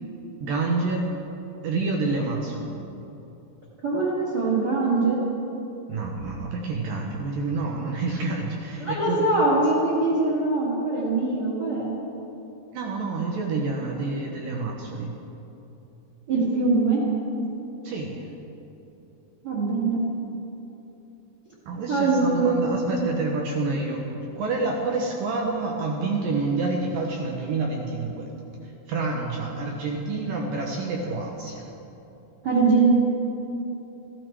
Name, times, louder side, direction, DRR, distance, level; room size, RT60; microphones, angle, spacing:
voice 1, 0.4-1.1 1.6-2.7 5.9-9.2 12.7-15.1 17.8-18.3 21.7-28.3 28.9-31.6, right 3 dB, 70° right, 0 dB, 2.1 m, -28 dB
voice 2, 3.8-5.2 8.8-11.9 16.3-17.0 19.4-20.0 21.9-23.0 32.4-32.9, right 3 dB, 35° right, -6 dB, 1.9 m, -22 dB
14.5 x 12.5 x 4.6 m, 2.9 s
omnidirectional pair, 5.0 m